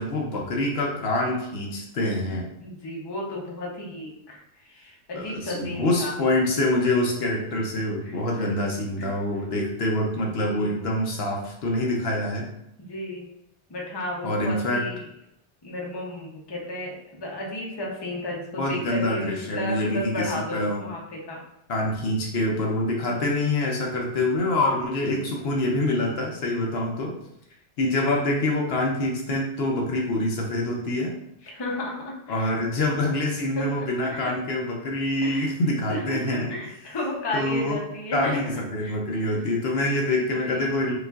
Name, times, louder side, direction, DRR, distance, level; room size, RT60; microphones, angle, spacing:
voice 1, 0.0-2.5 5.1-12.4 14.2-14.8 18.6-20.8 21.7-27.1 27.8-31.1 32.3-36.5 37.3-37.8 38.1-40.9, left 1 dB, 65° left, -1 dB, 0.9 m, -25 dB
voice 2, 2.6-6.1 8.0-8.5 9.0-9.1 10.4-10.7 12.8-13.3 13.7-15.0 15.6-21.4 23.0-23.2 25.1-25.3 31.4-32.6 33.5-34.3 35.2-35.5 35.9-38.4 38.8-39.0 39.3-39.4 39.8-40.8, left 1 dB, 25° left, -2 dB, 0.6 m, -34 dB
4.9 x 2.4 x 2.3 m, 0.81 s
omnidirectional pair, 1.2 m